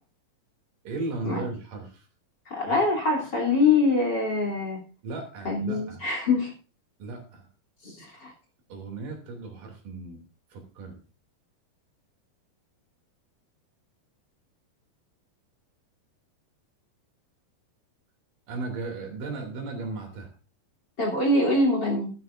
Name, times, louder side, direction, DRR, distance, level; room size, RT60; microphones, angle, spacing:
voice 1, 0.8-2.1 2.7-2.8 5.0-6.0 7.0-7.5 8.7-10.2 10.5-11.0 18.5-20.3, right 3 dB, 75° right, 2 dB, 4.5 m, -36 dB
voice 2, 2.5-4.8 5.5-6.5 7.8-7.9 8.2-8.3 21.0-22.1, left 3 dB, 30° left, 1 dB, 3.6 m, -24 dB
15.0 x 12.0 x 2.6 m, 0.35 s
omnidirectional pair, 3.8 m